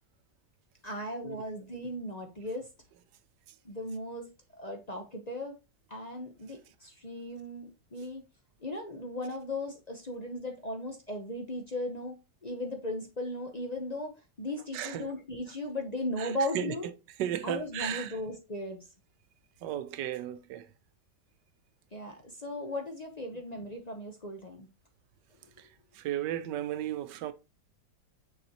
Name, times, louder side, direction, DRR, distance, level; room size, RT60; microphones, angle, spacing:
voice 1, 0.8-2.7 3.6-4.3 4.6-5.6 5.9-8.2 8.6-12.2 12.4-14.1 14.4-16.9 17.4-18.8 21.9-24.7, left 1 dB, 40° left, 0.6 m, -37 dB
voice 2, 14.7-15.1 16.2-16.7 17.2-18.2 19.6-20.7 25.9-27.3, right 11 dB, 80° right, 1.2 m, -34 dB
6.6 x 5.1 x 2.9 m
omnidirectional pair, 1.9 m